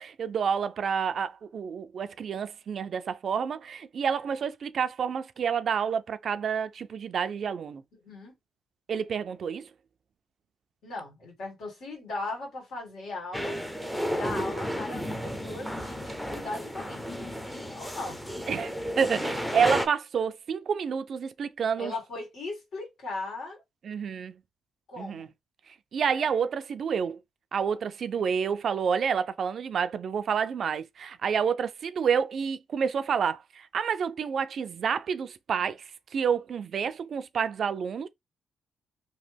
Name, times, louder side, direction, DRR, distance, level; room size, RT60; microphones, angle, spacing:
voice 1, 0.0-7.8 8.9-9.7 18.5-21.9 23.8-24.3 25.0-25.3 25.9-27.2 27.5-35.8 36.1-38.1, right 7 dB, 55° right, 0.3 m, -29 dB
voice 2, 7.9-8.4 10.8-13.6 14.1-17.0 17.4-18.2 21.8-23.6 24.9-25.3, left 2 dB, 70° left, 1.9 m, -38 dB
sound 1, 13.3-19.9, equal, 5° left, 0.6 m, -33 dB
3.0 x 2.1 x 3.3 m
cardioid pair, 90°, 0 cm